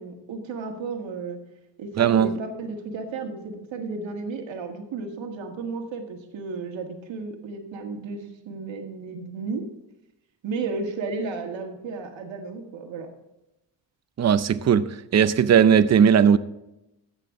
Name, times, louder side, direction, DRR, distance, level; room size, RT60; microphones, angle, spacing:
voice 1, 0.0-1.4 1.8-9.6 10.4-13.1, right 4 dB, 85° right, 1.8 m, -33 dB
voice 2, 2.0-2.4 14.2-16.4, right 8 dB, 35° right, 0.6 m, -18 dB
14.5 x 8.2 x 3.7 m
cardioid pair, 85°, 44 cm